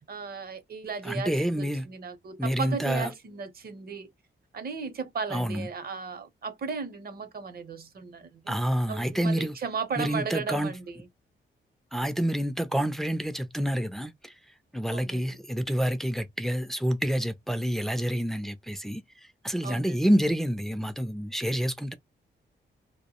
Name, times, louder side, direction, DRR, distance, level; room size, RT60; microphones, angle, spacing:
voice 1, 0.1-4.1 4.5-8.5 8.9-11.1 14.9-15.4 19.6-20.1, right 5 dB, 50° right, 0.7 m, -36 dB
voice 2, 1.0-1.9 2.4-3.1 5.3-5.7 8.5-9.6 10.0-10.7 11.9-14.3 14.7-19.0 19.4-21.9, equal, ahead, 0.4 m, -28 dB
2.1 x 2.0 x 2.9 m
cardioid pair, 90°, 20 cm